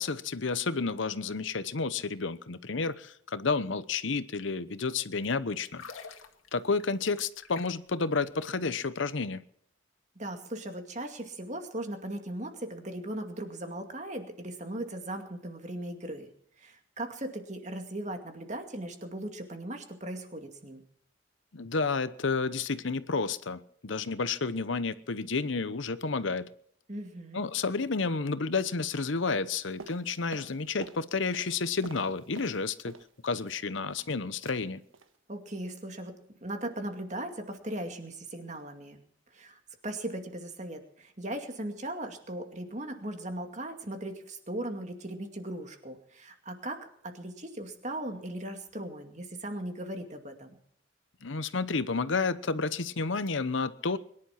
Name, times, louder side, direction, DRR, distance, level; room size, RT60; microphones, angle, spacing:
voice 1, 0.0-5.8 6.5-9.4 21.5-26.5 27.3-32.9 33.2-34.8 51.2-54.0, left 4 dB, 70° left, 14 dB, 0.9 m, -31 dB
sound 1, 5.6-8.0 8.2-8.4, left 5 dB, 90° left, 2.1 m, -47 dB
voice 2, 10.2-16.3 16.6-20.8 26.9-27.4 35.3-39.0 39.3-50.6, right 1 dB, 35° right, 5 dB, 2.3 m, -38 dB
sound 2, 29.8-31.0 31.3-33.1 33.4-34.1 34.4-34.7 34.9-35.2 35.5-35.7 36.0-36.1, right 3 dB, 85° right, 1.5 m, -48 dB
22.5 x 11.0 x 5.8 m, 0.67 s
head